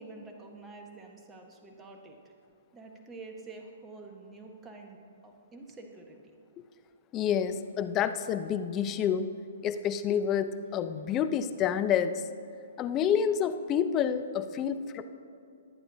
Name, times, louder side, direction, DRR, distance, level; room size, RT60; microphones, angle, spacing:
voice 1, 0.0-2.3 2.7-5.0 5.2-6.2, right 3 dB, 15° right, 2 dB, 1.3 m, -47 dB
voice 2, 7.1-9.3 9.6-12.2 12.8-15.0, left 8 dB, 25° left, 10 dB, 0.6 m, -28 dB
23.0 x 8.8 x 2.8 m, 2.6 s
hypercardioid pair, 125°, 0 cm